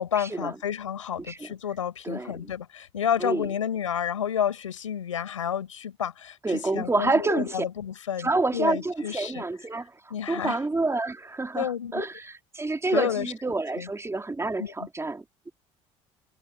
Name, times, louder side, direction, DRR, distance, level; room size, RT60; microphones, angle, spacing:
voice 1, 0.0-9.4 10.1-10.6 11.5-12.1 12.9-13.3 13.8-13.9 14.6-14.9, left 9 dB, 85° left, 4.7 m, -30 dB
voice 2, 6.4-7.6 8.2-9.9 10.3-15.5, right 3 dB, 15° right, 2.7 m, -28 dB
hypercardioid pair, 60°, 16 cm